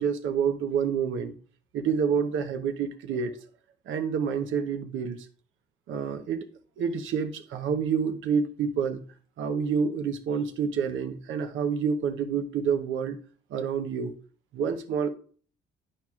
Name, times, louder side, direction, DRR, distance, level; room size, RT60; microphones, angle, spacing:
voice 1, 0.0-1.3 1.7-3.4 3.9-5.2 5.9-6.5 6.8-9.0 9.4-13.2 13.5-14.1 14.5-15.1, right 6 dB, 80° right, 0.9 m, -28 dB
11.0 x 4.6 x 2.4 m
cardioid pair, 90°, 20 cm